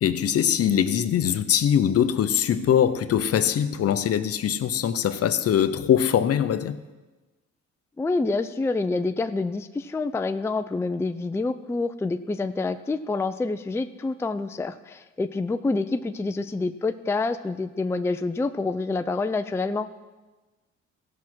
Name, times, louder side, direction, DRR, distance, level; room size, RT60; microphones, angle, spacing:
voice 1, 0.0-6.8, left 9 dB, 55° left, 0.6 m, -22 dB
voice 2, 8.0-19.9, left 3 dB, 10° left, 0.4 m, -27 dB
15.5 x 5.9 x 6.1 m
cardioid pair, 90°, 30 cm